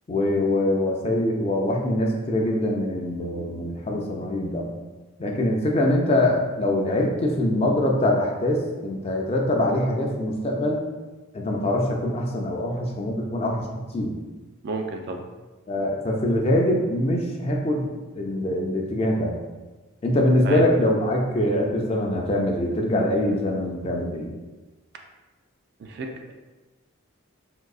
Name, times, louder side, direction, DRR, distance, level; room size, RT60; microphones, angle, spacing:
voice 1, 0.1-4.7 5.2-10.8 11.3-13.7 13.9-14.1 15.7-17.9 18.1-19.4 20.0-24.3, left 1 dB, 30° left, 0 dB, 0.3 m, -23 dB
voice 2, 14.6-15.3 20.4-20.6 25.8-26.3, right 3 dB, 50° right, 4 dB, 0.3 m, -32 dB
3.7 x 2.6 x 2.3 m, 1.2 s
head